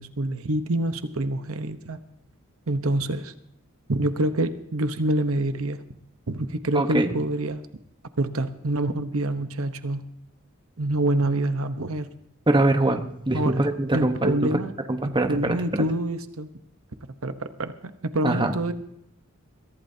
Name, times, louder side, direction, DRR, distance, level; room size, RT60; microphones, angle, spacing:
voice 1, 0.0-2.0 2.7-3.3 3.9-5.8 6.3-7.6 8.2-10.0 10.8-12.1 13.3-14.7 15.0-16.5 17.2-18.7, right 1 dB, 75° right, 10 dB, 1.0 m, -26 dB
voice 2, 6.7-7.1 12.5-14.6 14.9-15.8 18.2-18.5, right 2 dB, 20° right, 6 dB, 1.1 m, -23 dB
22.5 x 15.0 x 2.8 m, 0.78 s
head